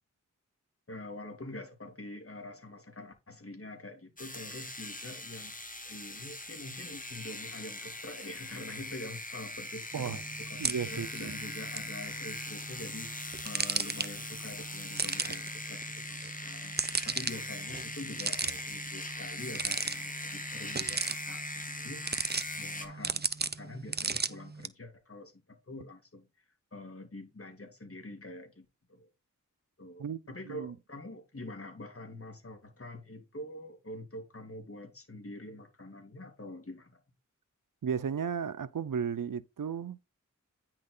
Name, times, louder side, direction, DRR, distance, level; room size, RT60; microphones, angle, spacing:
voice 1, 0.9-5.5 5.8-16.8 17.0-22.2 22.6-26.3 26.7-29.1 29.8-37.0, left 1 dB, 45° left, 3.2 m, -45 dB
sound 1, 4.2-22.9, left 2 dB, 25° left, 2.1 m, -41 dB
sound 2, 9.9-24.7, right 4 dB, 30° right, 0.7 m, -37 dB
voice 2, 10.6-11.3 30.0-30.2 30.5-30.7 37.8-40.0, right 7 dB, 85° right, 0.7 m, -34 dB
9.7 x 6.0 x 4.0 m
wide cardioid pair, 60°, 31 cm